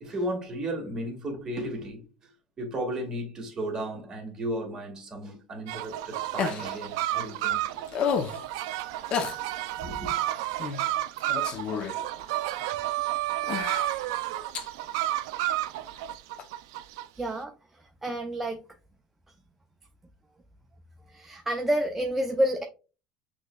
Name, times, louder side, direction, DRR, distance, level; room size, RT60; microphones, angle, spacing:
voice 1, 0.0-2.0 2.6-7.9 9.8-10.1, right 1 dB, 25° right, 1.7 m, -34 dB
sound 1, 5.7-17.1, right 14 dB, 85° right, 0.3 m, -31 dB
sound 2, 6.4-6.8 7.9-8.4 9.1-9.4 10.6-10.8 11.2-12.0 12.7-12.8 13.4-14.0 14.5-14.7 16.4-16.5, left 7 dB, 50° left, 0.6 m, -30 dB
voice 2, 17.1-18.6 21.1-22.6, right 1 dB, 10° right, 0.5 m, -29 dB
6.1 x 3.1 x 2.2 m
supercardioid pair, 115°, 2 cm